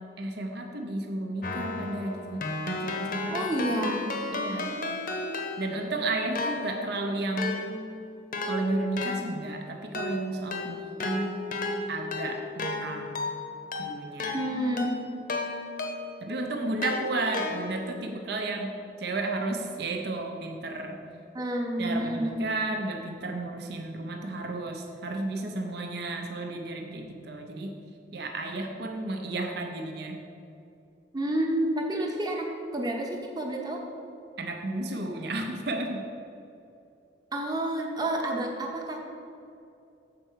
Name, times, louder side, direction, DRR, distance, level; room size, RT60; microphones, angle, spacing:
voice 1, 0.0-3.4 4.3-4.8 5.6-7.6 8.4-11.4 11.9-13.3 13.8-14.4 16.2-18.7 19.0-21.0 21.8-27.7 28.1-30.2 34.4-36.1, right 2 dB, 65° right, 3 dB, 0.6 m, -33 dB
Keyboard (musical), 1.4-5.9 6.4-16.3 16.8-18.0, left 3 dB, 50° left, 0.7 m, -34 dB
voice 2, 3.3-4.0 14.3-14.9 21.3-22.5 31.1-33.8 37.3-39.0, right 1 dB, 25° right, 0 dB, 0.9 m, -29 dB
6.8 x 4.5 x 6.2 m, 2.7 s
head